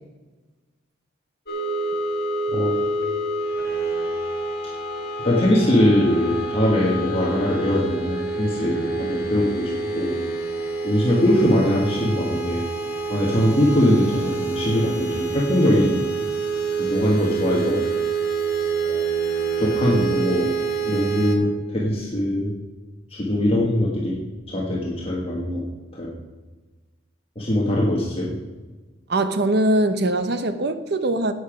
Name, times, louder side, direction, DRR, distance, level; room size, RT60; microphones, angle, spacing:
sound 1, 1.5-21.4, right 4 dB, 50° left, 1.9 m, -27 dB
voice 1, 2.5-2.8 5.2-10.2 10.8-12.6 13.1-15.9 16.8-17.9 18.8-19.0 19.6-20.5 20.9-22.5 23.1-24.2 24.5-25.7 25.9-26.1 27.3-28.3, left 1 dB, 30° left, -4 dB, 1.5 m, -21 dB
voice 2, 29.1-31.3, right 1 dB, 55° right, 11 dB, 0.8 m, -21 dB
11.0 x 8.8 x 5.0 m, 1.3 s
head